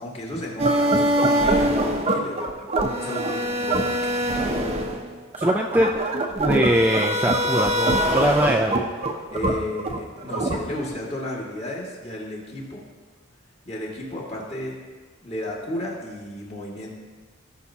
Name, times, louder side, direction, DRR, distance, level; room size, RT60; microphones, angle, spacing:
voice 1, 0.0-2.4 2.9-4.2 9.3-12.8 13.7-14.7 15.2-16.9, left 1 dB, 30° left, -4 dB, 2.0 m, -33 dB
sound 1, 0.6-11.0, right 1 dB, 30° right, 0.8 m, -23 dB
voice 2, 5.4-5.9 6.4-8.9, equal, 10° right, 1 dB, 0.4 m, -21 dB
17.0 x 5.9 x 2.8 m, 1.5 s
head